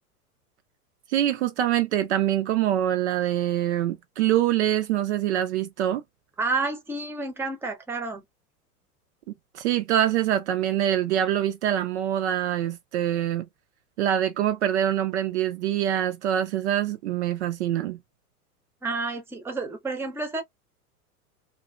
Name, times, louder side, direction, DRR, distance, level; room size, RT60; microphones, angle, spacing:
voice 1, 1.1-6.0 9.5-13.5 14.0-18.0, right 11 dB, 50° right, 0.5 m, -24 dB
voice 2, 6.4-8.2 18.8-20.4, right 3 dB, 5° right, 0.6 m, -30 dB
2.6 x 2.6 x 2.2 m
figure-of-eight pair, 90°, 45 cm